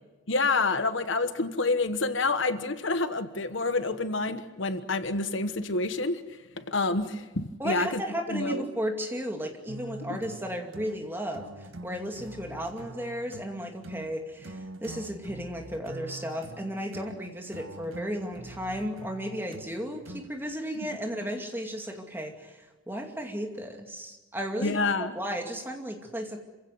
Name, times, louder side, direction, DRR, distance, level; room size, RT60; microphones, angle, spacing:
voice 1, 0.3-6.2 6.7-8.0 8.3-8.6 10.1-10.2 24.6-25.1, left 3 dB, 65° left, 10 dB, 1.2 m, -28 dB
voice 2, 7.6-24.9 25.1-26.4, equal, 10° right, 3 dB, 2.5 m, -34 dB
sound 1, 9.7-20.6, right 2 dB, 75° right, 1.5 m, -45 dB
26.5 x 16.5 x 9.4 m, 1.2 s
head